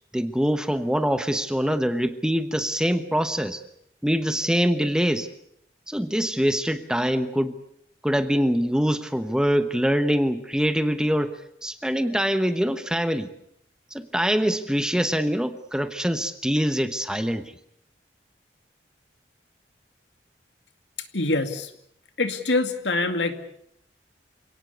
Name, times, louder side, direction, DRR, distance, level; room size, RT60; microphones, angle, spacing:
voice 1, 0.1-3.6 4.0-5.3 5.9-7.5 8.0-13.3 13.9-17.5, equal, 5° right, 10 dB, 1.1 m, -24 dB
voice 2, 21.1-21.7 22.2-23.5, left 2 dB, 80° left, 8 dB, 2.4 m, -25 dB
27.5 x 18.5 x 8.2 m, 0.73 s
head